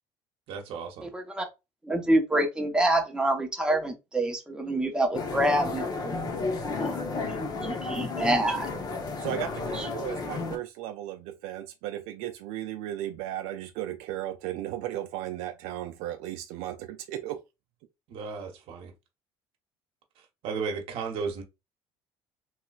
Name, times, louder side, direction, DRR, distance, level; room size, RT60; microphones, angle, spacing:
voice 1, 0.5-1.1 18.1-18.9 20.4-21.4, right 5 dB, 65° right, 0.9 m, -34 dB
voice 2, 1.9-6.1 6.7-7.0 7.6-8.7 9.8-9.9, right 1 dB, 10° right, 0.9 m, -26 dB
sound 1, 5.1-10.6, left 3 dB, 40° left, 0.8 m, -32 dB
voice 3, 9.2-17.4, right 12 dB, 80° right, 0.4 m, -35 dB
3.1 x 3.0 x 2.3 m
supercardioid pair, 95°, 10 cm